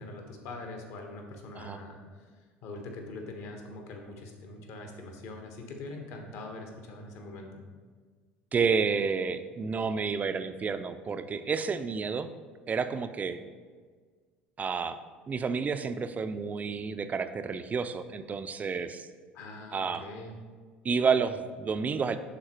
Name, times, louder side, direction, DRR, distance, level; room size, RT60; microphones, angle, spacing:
voice 1, 0.0-2.0 2.6-7.6 19.3-20.4, left 2 dB, 50° left, 3 dB, 1.1 m, -43 dB
voice 2, 8.5-12.3 12.7-13.4 14.6-15.0 15.3-19.1 19.7-20.1 20.8-22.2, right 5 dB, 25° right, 10 dB, 0.4 m, -30 dB
11.0 x 3.9 x 3.0 m, 1.5 s
figure-of-eight pair, 65°, 6 cm